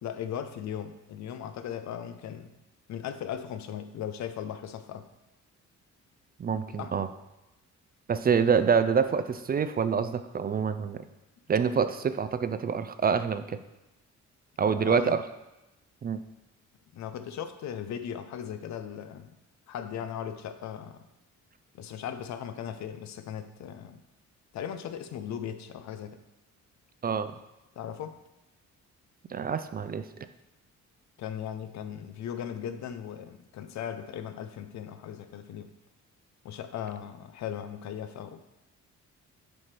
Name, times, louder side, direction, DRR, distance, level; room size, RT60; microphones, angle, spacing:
voice 1, 0.0-2.5 2.9-5.1 6.7-6.9 14.7-15.2 16.9-19.4 19.7-21.0 21.7-24.0 24.5-26.2 27.8-28.1 31.2-35.7 36.4-38.4, left 9 dB, 65° left, 10 dB, 0.6 m, -38 dB
voice 2, 6.4-7.1 8.1-11.0 11.5-13.6 14.6-15.2 16.0-16.2 27.0-27.3 29.3-30.1, right 6 dB, 30° right, 11 dB, 0.4 m, -26 dB
9.6 x 3.3 x 4.4 m, 0.96 s
cardioid pair, 90°, 30 cm